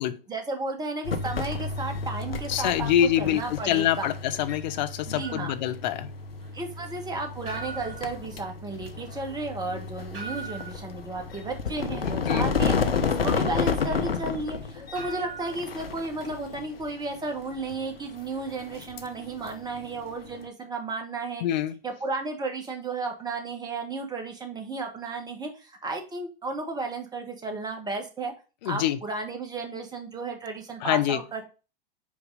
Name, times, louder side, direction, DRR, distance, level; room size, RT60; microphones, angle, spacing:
voice 1, 0.3-2.9 3.2-4.1 5.1-5.5 6.5-12.8 13.0-21.4 21.8-28.3 28.6-31.5, right 3 dB, 15° right, 1.6 m, -33 dB
sound 1, 1.0-20.5, left 5 dB, 80° left, 0.9 m, -32 dB
voice 2, 2.5-6.1 9.7-9.8 12.3-12.5 21.4-21.7 28.6-29.0 30.8-31.2, left 11 dB, 50° left, 0.7 m, -25 dB
sound 2, 5.2-16.6, right 5 dB, 65° right, 2.6 m, -44 dB
5.4 x 4.7 x 4.8 m
figure-of-eight pair, 100°, 29 cm